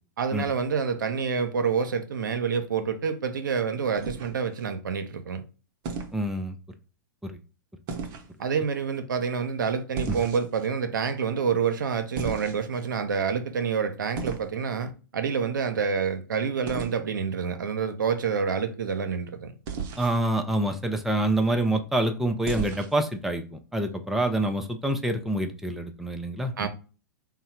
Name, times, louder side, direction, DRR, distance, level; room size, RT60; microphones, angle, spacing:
voice 1, 0.2-5.4 8.4-19.5 26.6-26.7, right 6 dB, 80° right, 0.6 m, -27 dB
sound 1, 4.0-4.6 5.8-6.2 7.9-8.3 10.0-10.7 12.2-12.9 14.2-14.5 16.7-16.9 19.7-20.2 22.4-23.0, right 5 dB, 45° right, 0.8 m, -34 dB
voice 2, 6.1-6.5 7.2-7.4 10.1-10.2 20.0-26.7, right 1 dB, ahead, 0.5 m, -27 dB
3.7 x 2.1 x 4.3 m
hypercardioid pair, 115°, 11 cm